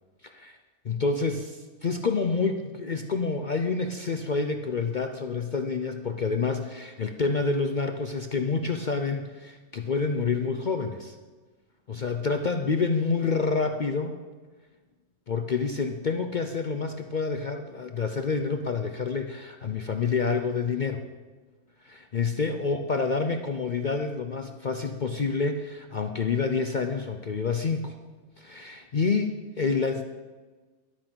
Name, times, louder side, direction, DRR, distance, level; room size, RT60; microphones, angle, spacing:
voice 1, 0.2-0.6 0.8-11.1 11.9-14.2 15.3-21.0 21.8-28.0 28.4-30.0, left 4 dB, 60° left, 6 dB, 0.4 m, -28 dB
12.0 x 8.8 x 6.2 m, 1.3 s
omnidirectional pair, 1.7 m